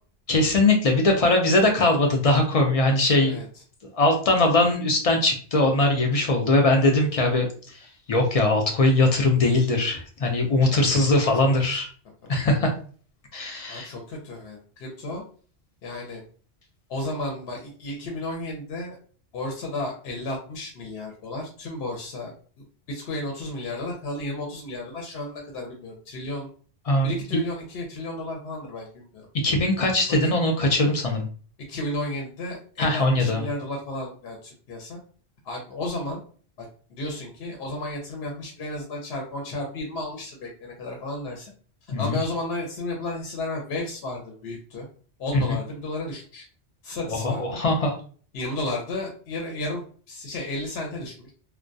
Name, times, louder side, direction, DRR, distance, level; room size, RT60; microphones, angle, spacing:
voice 1, 0.3-3.4 3.9-7.5 8.1-11.9 12.3-12.7 13.3-13.9 26.9-27.1 29.4-31.3 32.8-33.4 41.9-42.2 45.3-45.4 47.1-47.9, left 2 dB, 55° left, 2 dB, 0.4 m, -21 dB
voice 2, 10.7-11.0 12.2-12.4 13.7-15.2 15.8-16.2 16.9-19.0 19.3-26.5 27.0-29.3 30.1-30.3 31.7-35.0 35.4-36.2 36.6-41.5 42.0-44.9 45.2-46.4 46.8-47.6 48.3-51.3, left 2 dB, 75° left, 0 dB, 0.8 m, -33 dB
2.2 x 2.2 x 2.6 m, 0.42 s
omnidirectional pair, 1.1 m